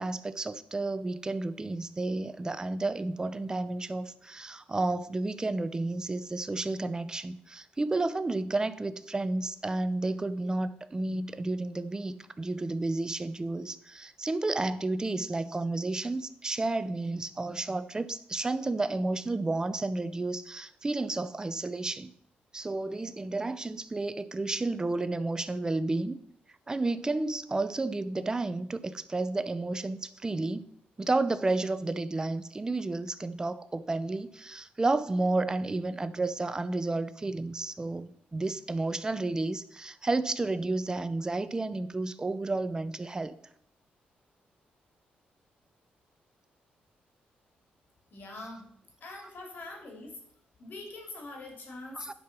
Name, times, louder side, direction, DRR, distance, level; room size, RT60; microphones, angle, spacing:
voice 1, 0.0-22.1 22.5-26.2 26.7-30.6 31.0-43.3 52.0-52.1, right 2 dB, 20° right, 14 dB, 0.6 m, -31 dB
voice 2, 48.1-48.7 49.0-50.2 50.6-52.1, left 2 dB, 60° left, 1 dB, 3.0 m, -43 dB
10.5 x 4.7 x 6.1 m, 0.68 s
cardioid pair, 105°, 4 cm